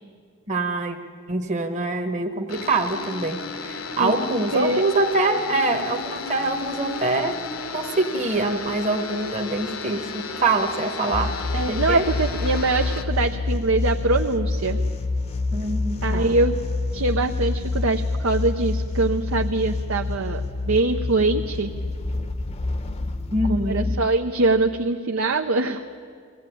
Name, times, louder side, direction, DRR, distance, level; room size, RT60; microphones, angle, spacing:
voice 1, 0.5-1.0 1.3-7.4 7.7-11.3 11.7-12.0 15.5-16.4 23.3-23.9, right 2 dB, 35° right, 3 dB, 1.2 m, -24 dB
sound 1, 2.5-13.0, left 4 dB, 75° left, 1.5 m, -34 dB
sound 2, 11.1-24.0, left 3 dB, 30° left, 0.9 m, -27 dB
voice 2, 11.5-14.8 16.0-16.5 16.9-21.7 23.5-25.8, right 2 dB, 70° right, 4 dB, 0.8 m, -23 dB
22.0 x 16.0 x 9.2 m, 2.2 s
head